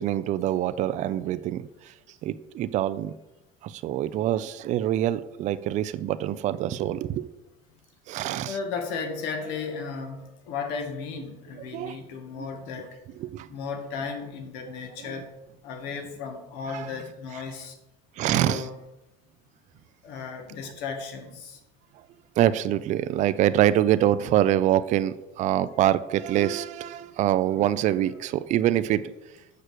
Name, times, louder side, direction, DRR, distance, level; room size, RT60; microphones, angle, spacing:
voice 1, 0.0-1.9 2.2-3.1 3.6-7.3 8.1-8.6 11.6-12.0 12.4-12.5 13.2-13.5 14.9-15.2 16.7-16.9 18.2-18.7 22.4-29.1, right 12 dB, 40° right, 14 dB, 0.4 m, -25 dB
voice 2, 8.5-13.0 13.5-15.3 15.6-17.8 18.3-18.8 20.0-21.6, left 5 dB, 75° left, 4 dB, 1.9 m, -35 dB
6.6 x 6.1 x 6.6 m, 0.96 s
cardioid pair, 135°, 18 cm